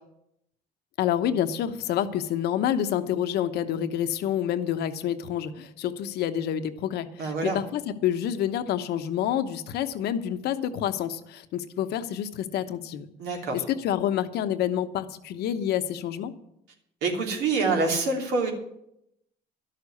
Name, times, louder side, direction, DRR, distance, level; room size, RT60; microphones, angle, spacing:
voice 1, 1.0-13.1 13.5-16.3, left 10 dB, 75° left, 10 dB, 1.0 m, -28 dB
voice 2, 7.2-7.6 13.2-13.6 17.0-18.5, right 3 dB, 90° right, 2 dB, 3.0 m, -26 dB
12.5 x 6.7 x 9.7 m, 0.79 s
cardioid pair, 110°, 17 cm